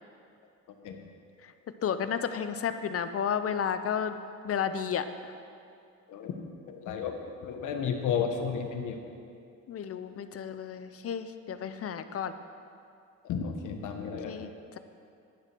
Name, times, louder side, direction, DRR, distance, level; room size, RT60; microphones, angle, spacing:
voice 1, 1.8-4.2 4.4-5.3 9.7-12.3 14.2-14.8, left 7 dB, 50° left, 10 dB, 0.6 m, -32 dB
voice 2, 6.7-7.1 7.4-9.0 13.2-14.4, left 7 dB, 85° left, 4 dB, 1.3 m, -32 dB
11.0 x 8.1 x 6.0 m, 2.5 s
cardioid pair, 90°, 30 cm